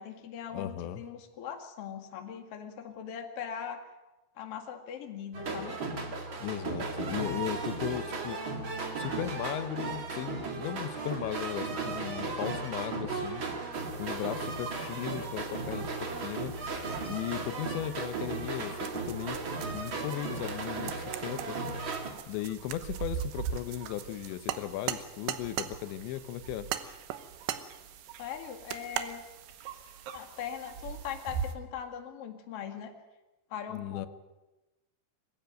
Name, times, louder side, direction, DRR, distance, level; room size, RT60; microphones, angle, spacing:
voice 1, 0.0-3.8 4.4-5.8 28.2-29.2 30.1-32.9 33.5-34.1, left 8 dB, 45° left, 4 dB, 2.3 m, -40 dB
voice 2, 0.5-1.0 6.4-8.4 9.0-19.4 19.7-22.0 22.3-26.7 33.7-34.1, left 12 dB, 90° left, 12 dB, 3.3 m, -37 dB
sound 1, 5.3-22.1, right 3 dB, 35° right, 2.3 m, -36 dB
sound 2, 13.7-31.5, right 7 dB, 65° right, 2.7 m, -44 dB
sound 3, 18.8-25.7 26.7-27.7 28.7-29.1, right 12 dB, 80° right, 3.3 m, -38 dB
22.0 x 16.0 x 9.2 m, 1.1 s
omnidirectional pair, 5.0 m